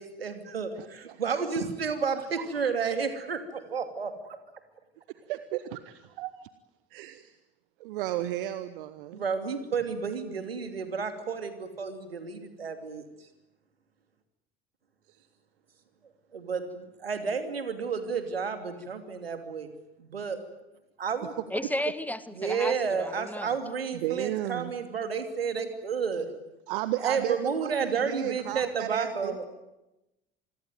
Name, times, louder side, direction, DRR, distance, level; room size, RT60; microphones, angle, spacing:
voice 1, 0.0-4.1 9.1-13.0 16.3-19.7 20.0-20.4 21.0-21.3 22.4-26.3 27.0-29.5, right 5 dB, 80° right, 8 dB, 2.9 m, -31 dB
voice 2, 0.7-1.2 2.1-2.5 5.3-6.5 6.9-7.4 7.8-9.2 21.2-21.7 23.9-24.7 26.7-29.4, right 14 dB, 65° right, 13 dB, 1.2 m, -34 dB
voice 3, 21.5-23.5, left 1 dB, 5° left, 14 dB, 1.6 m, -33 dB
27.0 x 21.0 x 9.3 m, 0.96 s
figure-of-eight pair, 65°, 29 cm